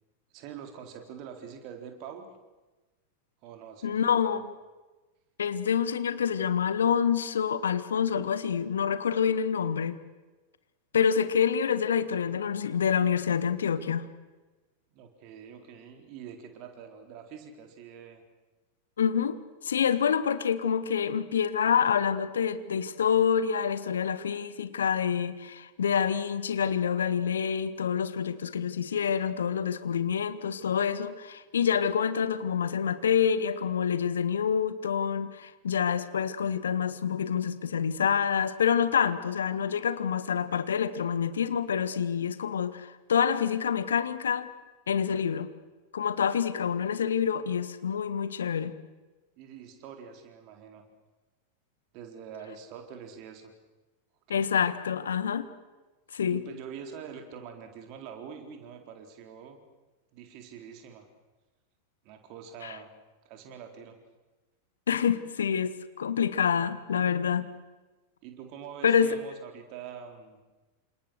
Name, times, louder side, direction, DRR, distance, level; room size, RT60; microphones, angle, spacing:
voice 1, 0.3-2.3 3.4-4.4 14.9-18.2 49.4-50.8 51.9-53.5 54.3-54.4 56.3-59.6 60.1-61.1 62.0-62.9 63.2-64.0 68.2-70.4, right 7 dB, 40° right, 4 dB, 4.1 m, -45 dB
voice 2, 3.8-4.5 5.4-10.0 10.9-14.0 19.0-44.5 44.9-45.5 45.9-48.7 54.3-55.5 56.1-56.4 62.6-62.8 64.9-67.4 68.8-69.2, left 7 dB, 65° left, 12 dB, 1.6 m, -27 dB
29.0 x 27.0 x 6.6 m, 1.2 s
figure-of-eight pair, 90°, 0 cm